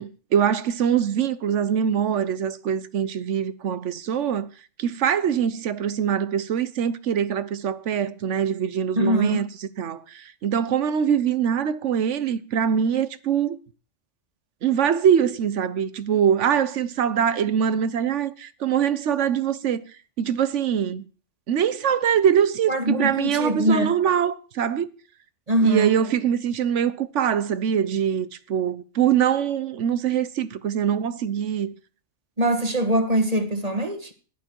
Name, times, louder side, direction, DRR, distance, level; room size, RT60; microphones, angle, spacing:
voice 1, 0.0-4.5 4.8-9.5 9.8-13.6 14.6-19.8 20.2-21.1 21.5-24.9 25.6-31.7, right 8 dB, 85° right, 1.2 m, -23 dB
voice 2, 9.0-9.4 22.7-23.9 25.5-26.0 32.4-34.1, right 1 dB, 35° right, 1.6 m, -22 dB
14.5 x 11.5 x 4.6 m
omnidirectional pair, 1.2 m